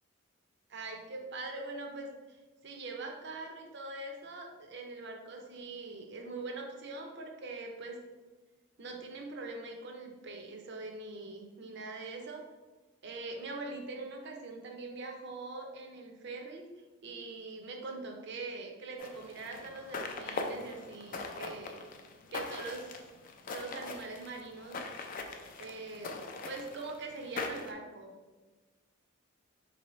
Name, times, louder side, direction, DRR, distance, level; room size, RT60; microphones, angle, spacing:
voice 1, 0.7-2.1 2.6-8.0 8.8-12.4 13.0-16.6 17.0-21.8 22.3-22.9 23.5-24.8 25.6-26.2 26.4-28.1, right 3 dB, 55° right, 2 dB, 0.6 m, -42 dB
sound 1, 19.0-27.7, left 3 dB, 40° left, 0.3 m, -41 dB
4.1 x 2.7 x 3.0 m, 1.3 s
head